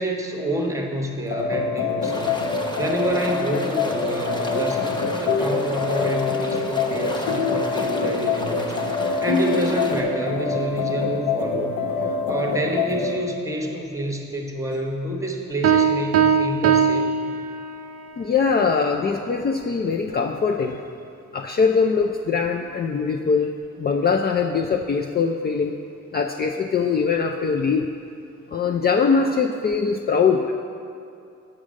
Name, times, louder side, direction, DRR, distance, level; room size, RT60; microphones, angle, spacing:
voice 1, 0.0-2.4 2.8-8.7 9.0-17.2, right 1 dB, 10° right, 1 dB, 1.1 m, -28 dB
sound 1, 1.3-13.2, left 4 dB, 70° left, 0.9 m, -25 dB
sound 2, 2.0-10.0, left 1 dB, 15° left, 0.9 m, -34 dB
sound 3, 15.6-18.0, right 7 dB, 55° right, 0.4 m, -20 dB
voice 2, 18.2-20.8 21.3-23.5 23.8-25.8 26.1-27.8 28.5-30.5, left 5 dB, 35° left, 2 dB, 0.4 m, -22 dB
7.4 x 5.0 x 6.3 m, 2.5 s
cardioid pair, 90°, 30 cm